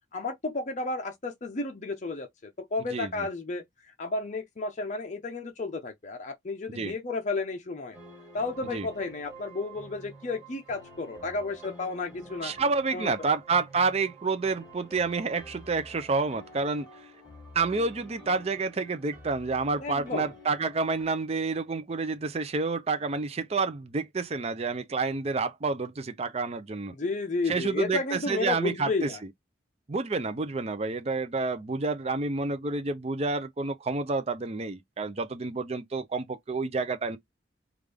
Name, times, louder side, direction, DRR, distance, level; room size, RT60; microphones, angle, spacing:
voice 1, 0.1-8.0 8.3-12.5 12.9-13.1 19.8-20.3 26.9-29.2, left 3 dB, 40° left, 0.6 m, -32 dB
voice 2, 2.9-3.3 6.7-6.9 8.7-8.9 12.4-16.9 17.5-26.9 27.5-29.1 29.9-37.2, right 4 dB, 35° right, 0.5 m, -29 dB
sound 1, 7.9-21.0, right 1 dB, 10° right, 2.1 m, -49 dB
3.5 x 2.4 x 3.3 m
head